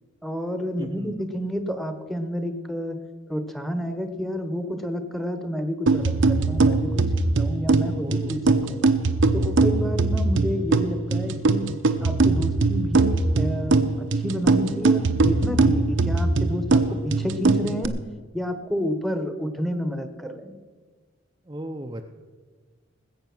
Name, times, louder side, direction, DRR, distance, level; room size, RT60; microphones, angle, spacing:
voice 1, 0.2-3.0 3.3-7.0 7.4-8.9 9.3-11.7 12.0-17.9 18.3-20.5, equal, ahead, 8 dB, 1.1 m, -30 dB
voice 2, 0.8-1.1 8.0-8.4 16.8-17.0 21.5-22.1, right 1 dB, 20° right, 3 dB, 0.6 m, -36 dB
sound 1, 5.9-17.9, right 3 dB, 70° right, 0.8 m, -21 dB
19.5 x 8.1 x 6.1 m, 1.4 s
head